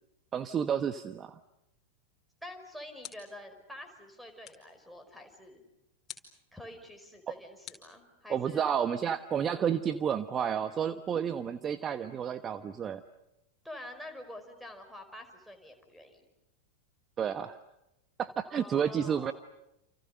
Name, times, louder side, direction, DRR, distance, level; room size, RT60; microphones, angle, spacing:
voice 1, 0.3-1.4 8.3-13.0 17.2-17.6 18.2-19.3, right 8 dB, 25° right, 11 dB, 1.1 m, -31 dB
sound 1, 2.3-3.5 4.4-4.8 6.1-6.4 7.6-8.5, left 9 dB, 25° left, 4.9 m, -49 dB
voice 2, 2.4-5.6 6.5-8.8 13.6-16.3 18.4-19.3, left 1 dB, ahead, 7 dB, 5.3 m, -47 dB
29.0 x 29.0 x 6.7 m, 0.88 s
figure-of-eight pair, 90°, 0 cm